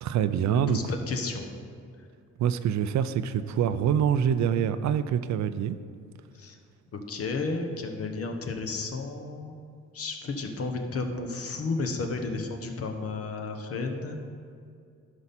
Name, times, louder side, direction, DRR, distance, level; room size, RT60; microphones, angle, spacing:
voice 1, 0.0-0.8 2.4-5.8, right 9 dB, 65° right, 12 dB, 0.5 m, -25 dB
voice 2, 0.5-1.5 6.3-6.6 6.9-9.6 9.9-14.2, left 3 dB, 50° left, 4 dB, 1.1 m, -32 dB
11.5 x 5.5 x 4.2 m, 2.3 s
cardioid pair, 90°, 30 cm